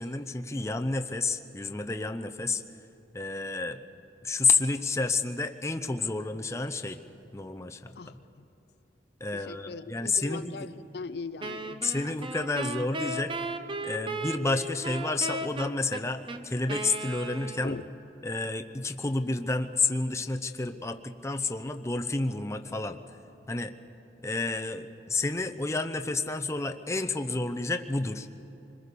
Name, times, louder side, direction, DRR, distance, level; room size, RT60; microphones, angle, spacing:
voice 1, 0.0-2.6 3.1-3.8 4.2-7.0 7.3-8.2 9.2-10.5 11.8-13.3 13.8-17.8 18.2-23.0 23.5-23.7 24.2-28.3, left 3 dB, 15° left, 6 dB, 0.7 m, -30 dB
voice 2, 8.0-8.5 9.3-11.9 17.6-17.8, left 4 dB, 60° left, 12 dB, 0.5 m, -40 dB
Wind instrument woodwind instrument, 11.4-18.0, right 2 dB, 30° right, 0.9 m, -36 dB
25.5 x 21.0 x 6.8 m, 2.9 s
head